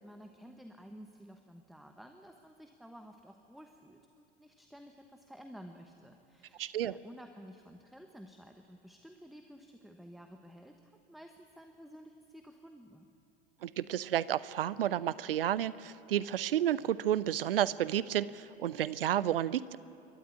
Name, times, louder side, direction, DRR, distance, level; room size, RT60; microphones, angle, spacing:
voice 1, 0.0-13.1, equal, ahead, 5 dB, 1.1 m, -53 dB
voice 2, 6.6-6.9 13.6-19.8, right 11 dB, 70° right, 18 dB, 0.6 m, -31 dB
28.5 x 12.5 x 8.5 m, 2.7 s
figure-of-eight pair, 75°, 30 cm